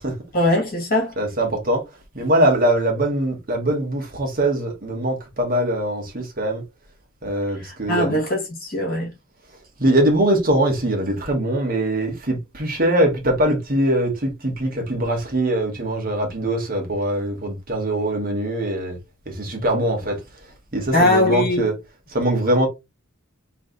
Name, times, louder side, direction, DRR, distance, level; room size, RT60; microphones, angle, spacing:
voice 1, 0.3-1.1 7.6-9.1 20.9-21.7, left 1 dB, 45° left, 1.8 m, -21 dB
voice 2, 1.2-1.8 2.1-6.6 7.2-8.2 9.8-19.0 19.3-20.2 20.7-21.8 22.1-22.7, right 1 dB, 45° right, 1.4 m, -22 dB
3.2 x 3.1 x 3.9 m
head